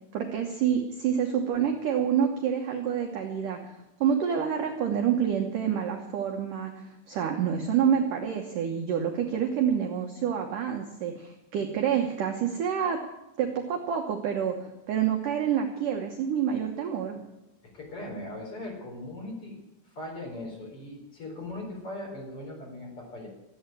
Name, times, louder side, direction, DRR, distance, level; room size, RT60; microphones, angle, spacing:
voice 1, 0.1-3.7 4.0-13.0 13.4-17.2, right 8 dB, 70° right, 3 dB, 2.0 m, -28 dB
voice 2, 17.7-19.5 19.9-23.3, left 1 dB, 30° left, -1 dB, 5.0 m, -39 dB
14.0 x 8.7 x 9.2 m, 0.93 s
omnidirectional pair, 5.3 m